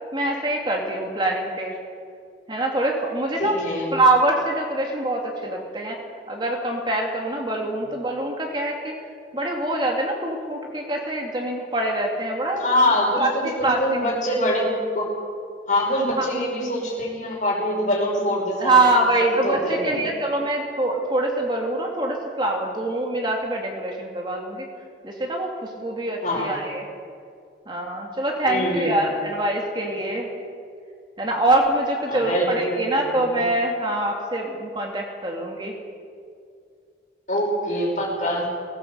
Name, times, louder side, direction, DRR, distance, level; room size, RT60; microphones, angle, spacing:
voice 1, 0.1-1.8 2.5-3.6 3.9-6.0 6.3-8.9 9.3-12.7 13.2-13.3 13.6-13.8 16.2-16.3 18.6-24.7 25.0-26.9 27.7-30.3 31.2-35.7, right 2 dB, 25° right, 0 dB, 2.4 m, -24 dB
voice 2, 3.4-3.9 12.6-15.1 15.7-18.7 19.4-20.0 26.2-26.5 28.5-28.9 32.1-33.2 37.3-38.5, left 1 dB, 45° left, -1 dB, 5.7 m, -24 dB
18.0 x 18.0 x 8.0 m, 2.3 s
head